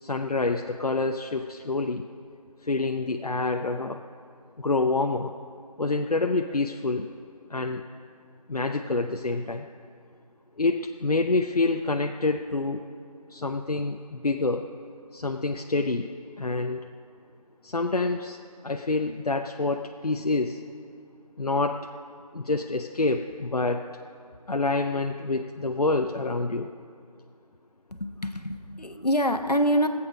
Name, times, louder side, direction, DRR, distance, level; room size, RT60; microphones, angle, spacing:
voice 1, 0.0-2.0 2.6-4.0 4.6-5.3 5.8-7.1 7.5-7.8 8.5-9.7 10.6-12.8 13.3-14.6 15.1-16.1 16.4-16.8 17.6-20.6 21.4-21.8 22.3-23.9 24.5-26.7, left 3 dB, 75° left, 4 dB, 0.7 m, -27 dB
voice 2, 27.9-29.9, equal, 90° left, 7 dB, 1.2 m, -25 dB
23.5 x 8.5 x 5.0 m, 2.3 s
figure-of-eight pair, 170°, 20 cm